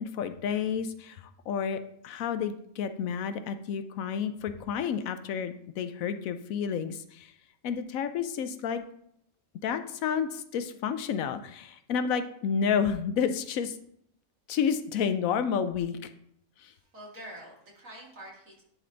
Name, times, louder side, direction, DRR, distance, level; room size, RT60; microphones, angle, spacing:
voice 1, 0.0-7.3 7.6-8.8 9.6-13.8 14.5-16.0 16.6-16.7, left 7 dB, 75° left, 10 dB, 1.0 m, -30 dB
voice 2, 16.7-18.6, right 1 dB, 65° right, -4 dB, 2.9 m, -46 dB
11.5 x 3.8 x 3.3 m, 0.70 s
omnidirectional pair, 1.5 m